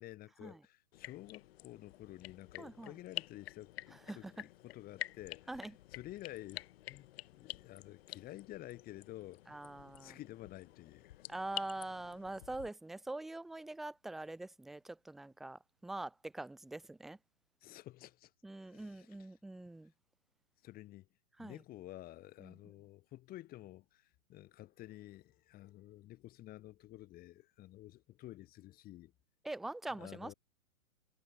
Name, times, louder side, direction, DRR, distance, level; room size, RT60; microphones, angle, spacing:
voice 1, 0.0-7.1 7.4-9.6 10.0-11.2 17.6-18.3 18.6-19.3 20.6-21.1 21.4-29.1 30.0-30.3, left 15 dB, 20° left, 3.7 m, -51 dB
sound 1, 0.9-12.7, left 15 dB, 45° left, 5.9 m, -49 dB
voice 2, 2.6-2.9 4.1-4.3 5.5-5.7 9.5-10.2 11.3-17.2 18.4-19.9 21.4-21.6 22.4-22.6 29.4-30.3, right 2 dB, ahead, 0.5 m, -44 dB
hypercardioid pair, 150°, 43 cm